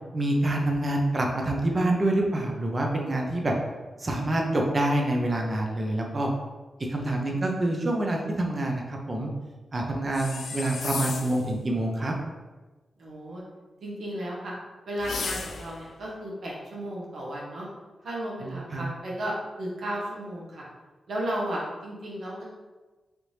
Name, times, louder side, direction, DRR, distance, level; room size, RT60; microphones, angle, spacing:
voice 1, 0.1-3.5 4.0-6.3 6.9-9.3 9.7-12.1 18.4-18.8, right 1 dB, 40° right, 0 dB, 0.6 m, -26 dB
voice 2, 7.0-7.5 13.0-13.4 13.8-14.5 14.8-17.7 18.0-20.6 21.1-22.4, right 1 dB, 75° right, -5 dB, 0.9 m, -34 dB
sound 1, 10.1-11.5 15.0-15.8, left 4 dB, 75° left, 0.3 m, -34 dB
3.3 x 2.7 x 3.1 m, 1.2 s
cardioid pair, 45°, 0 cm